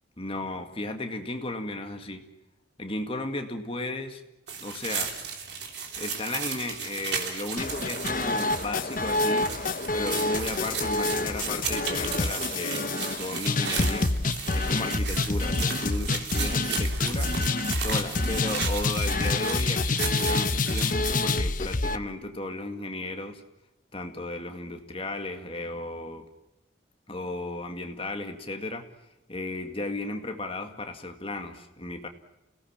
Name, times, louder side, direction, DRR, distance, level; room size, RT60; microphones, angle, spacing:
voice 1, 0.2-2.2 2.8-4.2 4.6-5.2 5.9-9.6 9.9-14.1 14.5-17.4 17.8-23.4 23.9-26.3 27.1-28.9 29.3-32.1, left 2 dB, 30° left, 5 dB, 2.1 m, -35 dB
sound 1, 4.5-21.1, right 6 dB, 60° right, 3.4 m, -35 dB
sound 2, 7.6-22.0, left 3 dB, 45° left, 1.0 m, -27 dB
29.0 x 18.0 x 7.4 m, 0.96 s
head